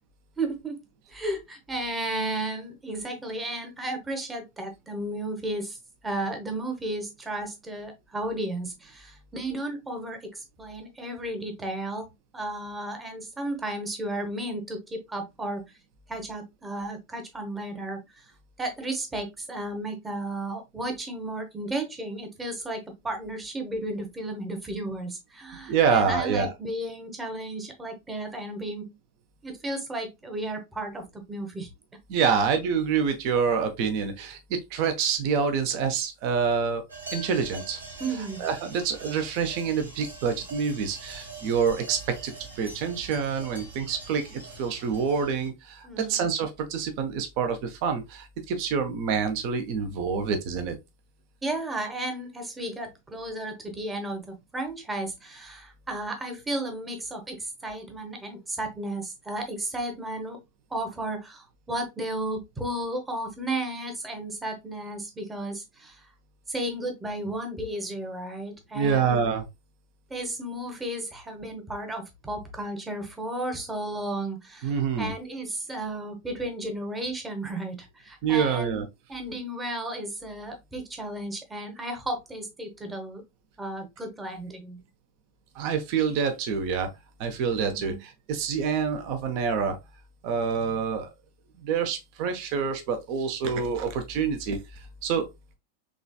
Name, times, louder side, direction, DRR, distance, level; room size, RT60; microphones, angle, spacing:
voice 1, 0.4-0.8 1.1-5.8 6.0-15.6 16.1-18.0 18.6-28.9 29.4-31.7 38.0-38.4 45.8-46.2 51.4-60.4 60.7-66.0 66.5-69.2 70.1-78.8 79.1-83.2 83.6-84.8 87.7-88.0, right 1 dB, 10° right, 1.0 m, -33 dB
voice 2, 25.7-26.5 32.1-34.4 34.7-36.8 37.1-37.8 38.4-50.8 68.7-69.5 74.6-75.1 78.2-78.9 85.5-86.9 87.2-89.8 90.2-91.1 91.6-94.6 95.0-95.3, right 6 dB, 45° right, 0.8 m, -27 dB
sound 1, 36.9-45.5, right 3 dB, 75° right, 1.2 m, -43 dB
3.8 x 3.2 x 2.3 m
figure-of-eight pair, 90°, 0 cm